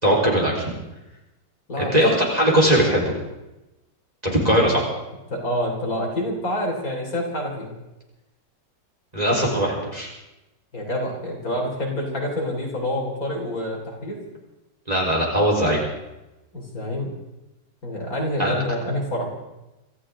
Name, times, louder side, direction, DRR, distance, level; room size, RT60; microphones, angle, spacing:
voice 1, 0.0-0.7 1.8-3.1 4.2-4.8 9.1-10.1 14.9-15.8 18.4-18.5, equal, 20° right, -3 dB, 4.4 m, -20 dB
voice 2, 5.3-7.7 10.7-14.2 16.5-17.1 17.8-19.3, left 1 dB, 50° left, -1 dB, 4.1 m, -27 dB
25.0 x 14.5 x 3.8 m, 0.98 s
omnidirectional pair, 2.0 m